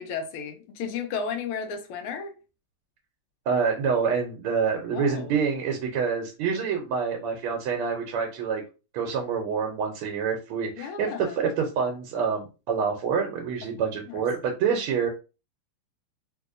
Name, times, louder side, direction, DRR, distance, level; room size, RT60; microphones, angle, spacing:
voice 1, 0.0-2.3 4.9-5.3 10.8-11.5 13.6-13.7 14.1-14.2, left 6 dB, 85° left, 1.6 m, -34 dB
voice 2, 3.5-8.6 8.9-15.1, right 6 dB, 80° right, 1.5 m, -27 dB
3.8 x 2.7 x 2.5 m
omnidirectional pair, 2.4 m